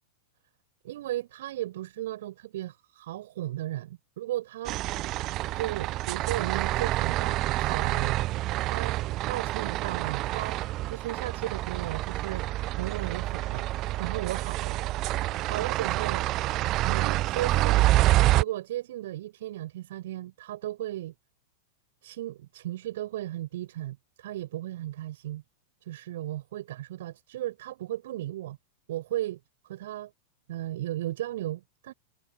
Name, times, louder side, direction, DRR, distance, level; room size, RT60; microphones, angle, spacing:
voice 1, 0.8-4.8 5.6-8.2 8.6-9.0 9.3-12.5 12.8-13.7 14.0-15.0 15.4-16.3 16.8-18.0 18.4-21.1 22.0-25.4 25.8-28.6 28.9-30.1 30.5-31.9, right 14 dB, 55° right, 6.0 m, -35 dB
sound 1, 4.7-18.4, right 16 dB, 35° right, 0.8 m, -27 dB
figure-of-eight pair, 90°, 0 cm